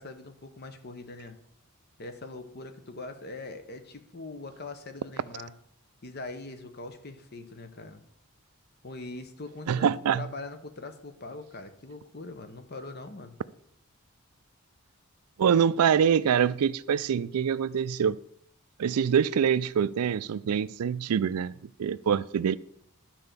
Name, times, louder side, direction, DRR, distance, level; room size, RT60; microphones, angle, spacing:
voice 1, 0.0-1.4 2.0-5.5 6.0-8.0 8.8-9.9 10.1-13.4, left 2 dB, 45° left, 0.9 m, -42 dB
voice 2, 9.7-10.2 15.4-18.2 18.8-21.5 21.8-22.6, right 7 dB, 90° right, 0.4 m, -25 dB
11.5 x 4.5 x 6.8 m
head